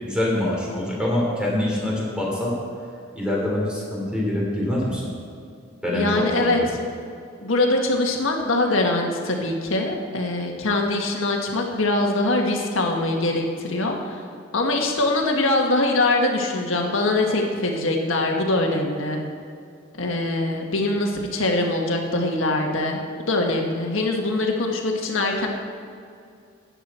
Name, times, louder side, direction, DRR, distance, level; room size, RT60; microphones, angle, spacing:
voice 1, 0.0-2.5 3.1-5.1 5.8-6.7, left 1 dB, 5° right, -4 dB, 3.4 m, -25 dB
voice 2, 5.9-6.6 7.4-14.2 14.5-19.2 19.9-23.0 23.3-25.5, left 2 dB, 70° left, 1 dB, 1.6 m, -23 dB
14.0 x 9.9 x 4.4 m, 2.4 s
head